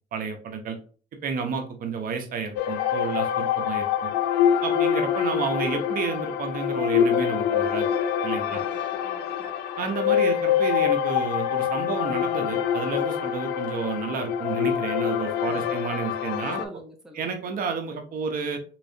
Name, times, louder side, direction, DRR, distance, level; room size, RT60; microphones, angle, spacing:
voice 1, 0.1-0.8 1.2-4.1 4.6-7.9 8.2-8.6 9.8-16.6 17.2-18.6, right 5 dB, 55° right, 6 dB, 0.9 m, -31 dB
sound 1, 2.6-16.7, left 9 dB, 85° left, 0.5 m, -25 dB
voice 2, 8.5-9.5 15.4-15.7 16.6-17.3, right 1 dB, 5° right, 2 dB, 0.6 m, -45 dB
3.9 x 3.0 x 2.7 m, 0.40 s
cardioid pair, 110°, 17 cm